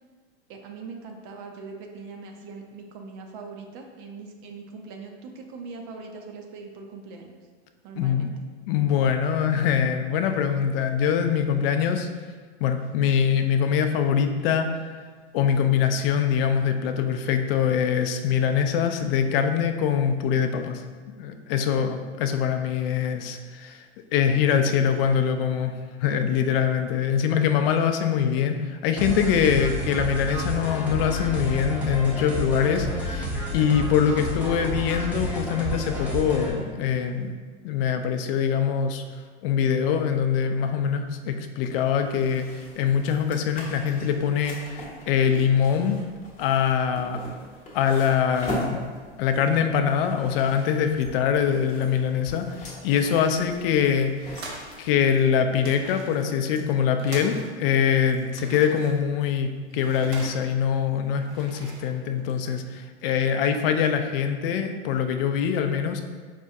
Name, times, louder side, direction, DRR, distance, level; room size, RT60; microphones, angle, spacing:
voice 1, 0.5-7.4 7.8-8.3 21.7-21.8 24.6-25.1 26.8-27.2 33.9-34.3 47.0-47.4 53.5-54.0, right 4 dB, 45° right, 2 dB, 0.5 m, -42 dB
voice 2, 8.0-8.3 8.7-12.1 12.6-14.9 15.3-20.8 21.2-23.9 24.1-25.7 26.0-37.4 37.6-39.0 39.4-46.0 46.4-47.2 47.7-48.8 49.2-54.4 54.8-66.0, left 7 dB, 55° left, 7 dB, 0.4 m, -23 dB
sound 1, 29.0-36.5, equal, 5° right, 0.7 m, -30 dB
sound 2, 41.6-55.9, left 1 dB, 20° left, 1.0 m, -41 dB
sound 3, 52.4-54.9 55.1-55.2 55.5-57.8 58.1-60.7 61.1-62.6, right 2 dB, 75° right, 0.9 m, -43 dB
5.0 x 2.3 x 2.6 m, 1.5 s
hypercardioid pair, 105°, 35 cm